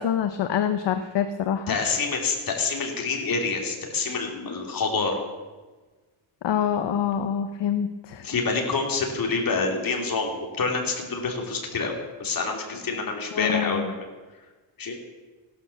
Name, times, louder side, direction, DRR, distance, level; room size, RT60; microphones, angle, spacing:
voice 1, 0.0-1.8 6.4-8.2 13.3-13.9, left 9 dB, 60° left, 9 dB, 1.0 m, -26 dB
voice 2, 1.7-5.2 8.2-11.9 12.2-13.8 14.8-15.0, left 4 dB, 45° left, 1 dB, 3.1 m, -27 dB
16.0 x 11.5 x 7.0 m, 1.3 s
cardioid pair, 150°, 48 cm